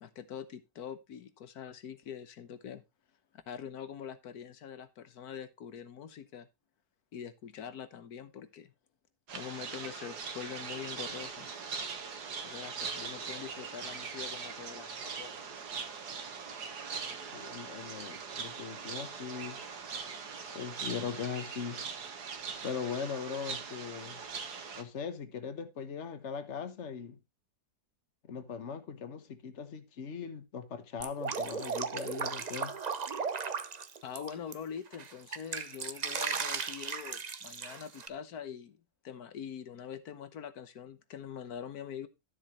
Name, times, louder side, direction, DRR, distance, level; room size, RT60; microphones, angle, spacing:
voice 1, 0.0-2.8 3.5-6.5 7.1-8.7 9.3-11.5 12.4-15.4 34.0-38.8 39.0-42.1, left 8 dB, 75° left, 1.6 m, -44 dB
sound 1, 9.3-24.8, right 5 dB, 85° right, 1.9 m, -41 dB
voice 2, 17.3-19.6 20.5-21.8 22.6-24.2 24.8-27.2 28.3-32.7, left 6 dB, 50° left, 1.5 m, -40 dB
Drip, 31.0-34.5 34.9-38.1, right 5 dB, 40° right, 0.6 m, -36 dB
12.5 x 7.6 x 3.0 m
omnidirectional pair, 1.7 m